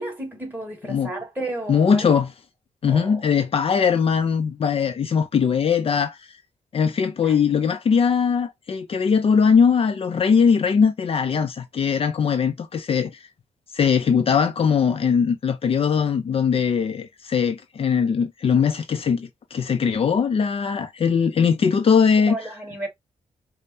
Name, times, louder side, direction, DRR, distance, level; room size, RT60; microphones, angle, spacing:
voice 1, 0.0-2.2 2.9-3.3 7.2-7.4 22.2-22.9, right 2 dB, 15° right, 2.1 m, -33 dB
voice 2, 1.7-2.3 2.8-6.2 6.7-13.2 13.7-22.4, left 6 dB, 45° left, 0.5 m, -20 dB
5.2 x 2.1 x 2.7 m
wide cardioid pair, 130°, 13 cm